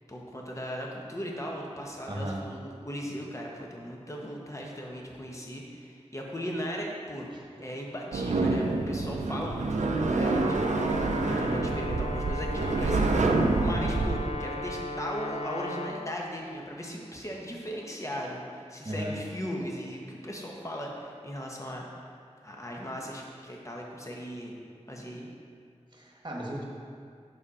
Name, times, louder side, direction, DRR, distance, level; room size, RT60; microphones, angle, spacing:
voice 1, 0.1-2.6 2.8-10.9 11.3-21.9 22.4-24.5 24.9-25.3, equal, 25° left, -1 dB, 1.1 m, -38 dB
voice 2, 2.1-2.4 7.3-7.4 13.6-13.9 18.8-19.1 25.9-26.6, right 1 dB, 40° right, -2 dB, 1.3 m, -35 dB
sound 1, 8.1-14.3, right 3 dB, 85° right, 0.5 m, -27 dB
Brass instrument, 10.2-16.0, left 1 dB, 55° left, 0.4 m, -36 dB
6.6 x 4.9 x 4.2 m, 2.3 s
wide cardioid pair, 50°, 12 cm